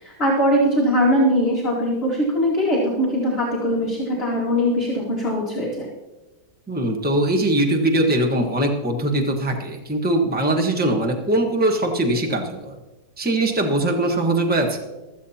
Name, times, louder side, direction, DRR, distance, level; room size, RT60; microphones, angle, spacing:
voice 1, 0.0-5.9, equal, 35° left, -4 dB, 2.0 m, -21 dB
voice 2, 6.7-12.7 13.2-14.8, right 1 dB, 5° right, 2 dB, 1.1 m, -21 dB
15.5 x 13.5 x 2.9 m, 1.1 s
omnidirectional pair, 1.9 m